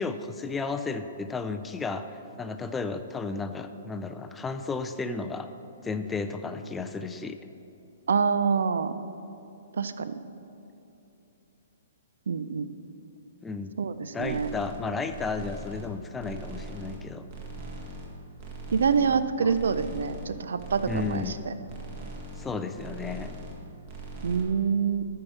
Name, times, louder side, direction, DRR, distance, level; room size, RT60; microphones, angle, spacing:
voice 1, 0.0-5.5 5.8-7.4 13.4-13.7 14.1-17.3 19.4-19.5 20.9-21.3 22.4-23.3, left 4 dB, 10° left, 8 dB, 0.4 m, -33 dB
voice 2, 8.1-8.9 9.8-10.2 12.3-12.7 13.8-14.5 18.7-21.5 24.2-25.1, right 6 dB, 80° right, 12 dB, 0.5 m, -26 dB
sound 1, 14.2-14.8 15.1-15.9 16.2-17.0 17.3-18.1 18.4-19.2 19.5-20.3 20.6-21.3 21.7-22.5 22.8-23.6 23.9-24.4, right 2 dB, 45° right, 1.8 m, -40 dB
12.0 x 4.7 x 6.2 m, 2.9 s
hypercardioid pair, 140°, 0 cm